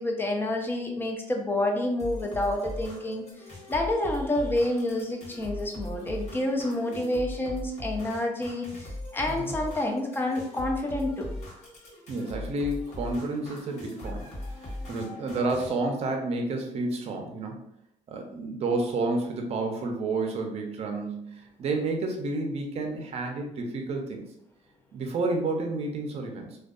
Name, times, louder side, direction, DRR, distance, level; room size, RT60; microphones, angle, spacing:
voice 1, 0.0-3.2 3.7-11.3, left 1 dB, 15° left, 1 dB, 0.5 m, -28 dB
sound 1, 2.0-15.7, left 1 dB, 50° left, 1.1 m, -40 dB
voice 2, 12.1-14.3 14.9-17.6 18.1-24.3 24.9-26.6, right 2 dB, 45° right, 3 dB, 0.6 m, -30 dB
2.5 x 2.2 x 2.4 m, 0.78 s
cardioid pair, 95°, 14 cm